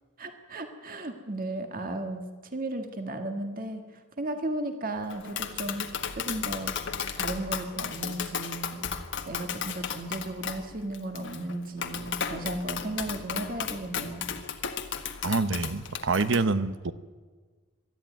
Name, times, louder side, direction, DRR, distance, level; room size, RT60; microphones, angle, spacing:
voice 1, 0.2-5.9 6.1-6.7 7.1-8.9 9.3-14.3, right 1 dB, 40° right, 6 dB, 1.8 m, -35 dB
Tap, 5.1-16.4, left 7 dB, 55° left, 1.5 m, -34 dB
voice 2, 15.2-16.9, right 3 dB, 60° right, 13 dB, 0.9 m, -26 dB
22.5 x 13.5 x 9.4 m, 1.4 s
head